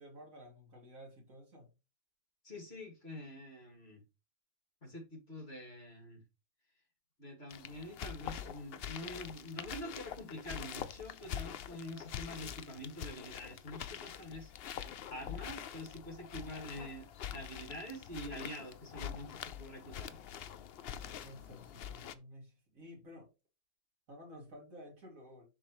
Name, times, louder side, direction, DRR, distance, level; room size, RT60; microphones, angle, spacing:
voice 1, 0.0-1.7 20.9-23.3 24.1-25.4, equal, 65° right, 2.6 m, -53 dB
voice 2, 2.4-4.0 4.8-6.2 7.2-20.2, left 1 dB, 45° left, 2.5 m, -46 dB
sound 1, 7.5-22.1, left 9 dB, 75° left, 0.5 m, -45 dB
11.0 x 3.6 x 3.0 m
omnidirectional pair, 1.6 m